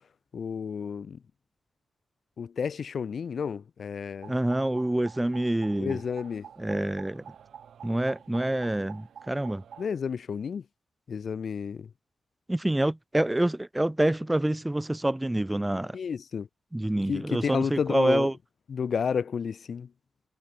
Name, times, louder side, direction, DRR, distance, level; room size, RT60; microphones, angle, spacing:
voice 1, 0.3-1.2 2.4-4.3 5.8-6.5 9.8-10.6 11.1-11.9 15.9-16.5 17.1-18.3 18.7-19.9, left 6 dB, 70° left, 1.3 m, -31 dB
sound 1, 4.2-9.9, right 8 dB, 80° right, 2.8 m, -49 dB
voice 2, 4.3-6.0 6.6-7.2 7.8-9.6 12.5-16.0 16.7-18.3, right 1 dB, 15° right, 0.5 m, -27 dB
cardioid pair, 50°, 0 cm